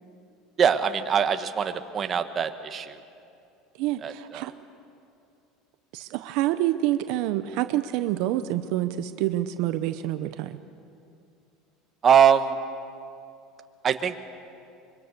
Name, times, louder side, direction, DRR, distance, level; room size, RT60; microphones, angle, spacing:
voice 1, 0.6-3.0 4.0-4.5 12.0-12.6 13.8-14.1, right 8 dB, 30° right, 8 dB, 1.2 m, -22 dB
voice 2, 3.8-4.5 5.9-10.6, right 14 dB, 65° right, 10 dB, 0.8 m, -27 dB
24.5 x 23.5 x 6.8 m, 2.6 s
supercardioid pair, 135°, 0 cm